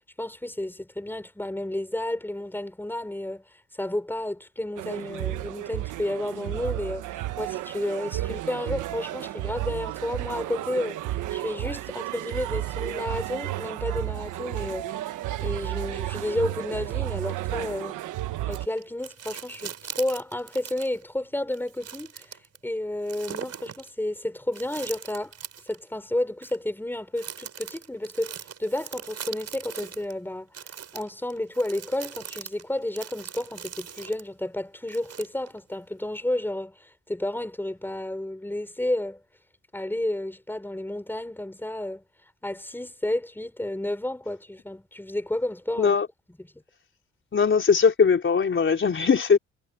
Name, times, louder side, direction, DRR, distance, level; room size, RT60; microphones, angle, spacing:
voice 1, 0.2-3.4 3.7-7.1 7.4-15.1 15.4-18.0 18.5-22.4 22.6-25.3 25.6-30.5 30.9-39.2 39.7-42.0 42.4-46.0 46.4-46.5, left 1 dB, 5° left, 4.8 m, -31 dB
sound 1, 4.8-18.7, right 15 dB, 90° right, 1.3 m, -32 dB
sound 2, 18.5-21.0 21.5-22.6 23.1-23.9 24.5-25.8 26.4-26.6 27.2-30.1 30.5-34.3 34.9-35.6 36.2-36.3, right 8 dB, 55° right, 7.9 m, -40 dB
voice 2, 47.3-49.4, left 5 dB, 40° left, 4.2 m, -20 dB
cardioid pair, 90°, 30 cm